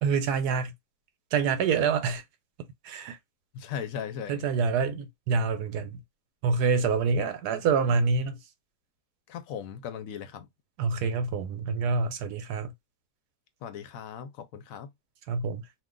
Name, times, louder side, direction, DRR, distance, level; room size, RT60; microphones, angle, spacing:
voice 1, 0.0-0.7 1.3-2.2 2.8-3.2 4.3-6.0 6.4-8.4 10.8-12.7 15.3-15.6, right 5 dB, 80° right, 1.2 m, -26 dB
voice 2, 3.5-4.5 9.3-10.5 13.6-14.9, left 8 dB, 65° left, 0.9 m, -38 dB
2.6 x 2.4 x 3.6 m
omnidirectional pair, 1.7 m